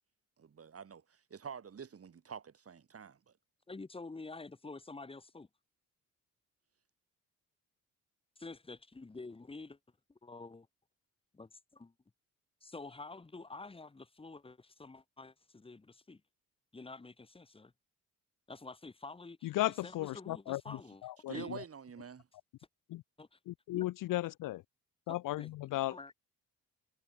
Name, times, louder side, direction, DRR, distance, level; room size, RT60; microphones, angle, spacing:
voice 1, 0.4-3.2 21.3-22.3, right 6 dB, 45° right, 5.7 m, -47 dB
voice 2, 3.7-5.5 8.4-9.8 10.2-10.7 11.3-11.9 12.6-16.2 16.7-17.7 18.5-21.5 23.2-23.4 23.7-23.9 25.1-25.5 25.9-26.1, left 3 dB, 15° left, 1.4 m, -49 dB
voice 3, 19.4-20.8 21.0-21.6 22.9-23.0 23.5-24.6 25.1-25.9, left 16 dB, 70° left, 0.5 m, -35 dB
cardioid pair, 100°, 33 cm